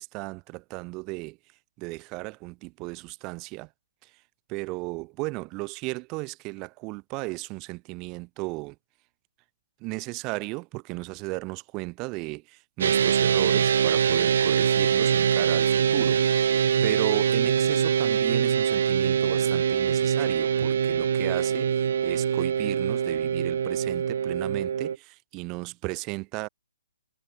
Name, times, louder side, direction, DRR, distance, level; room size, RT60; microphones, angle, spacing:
voice 1, 0.0-1.4 1.8-3.7 4.0-4.1 4.5-8.7 9.8-16.2 16.8-26.5, right 26 dB, 20° right, 4.6 m, -35 dB
sound 1, 12.8-25.0, right 8 dB, 50° right, 0.8 m, -23 dB
figure-of-eight pair, 130°, 0 cm